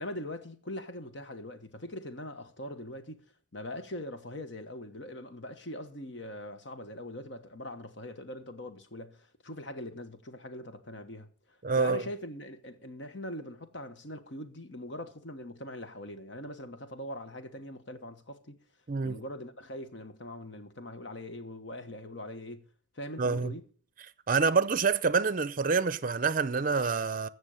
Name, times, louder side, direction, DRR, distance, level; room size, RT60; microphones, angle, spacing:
voice 1, 0.0-3.2 3.5-18.6 19.0-22.7 22.9-23.7, left 1 dB, 65° left, 1.3 m, -42 dB
voice 2, 11.6-12.0 18.9-19.2 23.2-23.5 24.3-27.3, right 5 dB, 45° right, 0.6 m, -27 dB
15.0 x 6.3 x 6.5 m
head